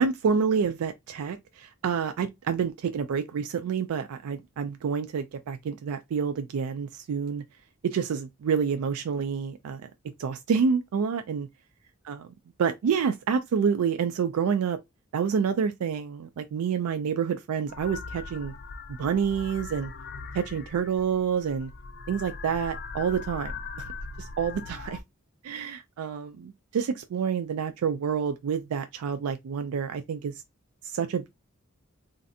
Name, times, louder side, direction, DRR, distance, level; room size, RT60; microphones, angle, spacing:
voice 1, 0.0-7.4 7.8-9.8 10.2-11.5 12.0-12.3 12.6-14.8 15.1-18.5 19.0-19.9 20.3-21.7 22.1-23.5 24.2-25.0 25.4-30.3 30.8-31.3, right 6 dB, 85° right, 0.3 m, -28 dB
sound 1, 17.7-25.0, left 4 dB, 45° left, 0.4 m, -40 dB
3.1 x 2.6 x 2.6 m
head